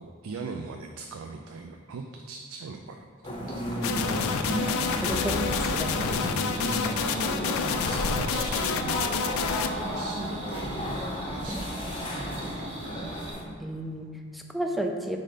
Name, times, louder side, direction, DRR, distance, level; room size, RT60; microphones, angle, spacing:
voice 1, 0.0-3.4 6.3-6.9 7.7-10.9 11.3-13.0, right 4 dB, 85° right, 5 dB, 0.4 m, -40 dB
sound 1, 3.2-13.4, equal, 25° left, 0.7 m, -33 dB
sound 2, 3.8-9.7, left 6 dB, 85° left, 0.4 m, -29 dB
sound 3, 4.0-13.3, right 1 dB, 30° right, 0.8 m, -40 dB
voice 2, 4.9-6.3 7.5-7.9 11.5-11.6 13.6-15.2, right 1 dB, ahead, 3 dB, 0.3 m, -33 dB
5.3 x 3.8 x 5.0 m, 2.1 s
head